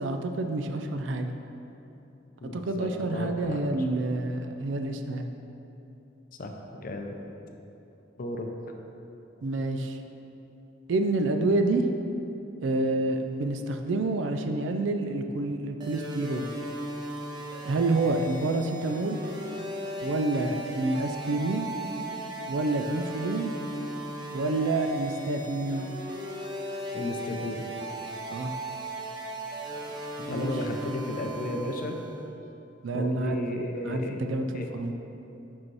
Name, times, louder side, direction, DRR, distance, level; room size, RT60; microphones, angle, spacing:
voice 1, 0.0-1.3 2.5-5.3 9.4-10.0 10.9-11.8 12.6-16.5 17.6-19.2 20.0-21.7 22.5-23.5 24.3-25.9 28.3-28.5 30.2-30.5 32.8-33.4 33.8-34.9, right 2 dB, 75° right, 6 dB, 0.4 m, -28 dB
voice 2, 2.4-3.6 6.4-6.5 6.8-7.2 8.2-8.5 26.9-27.7 30.3-32.0 32.9-34.2 34.5-34.7, left 1 dB, 50° left, 3 dB, 0.5 m, -33 dB
sound 1, 15.8-32.2, right 1 dB, 25° right, 0.8 m, -37 dB
5.5 x 5.1 x 4.7 m, 2.9 s
head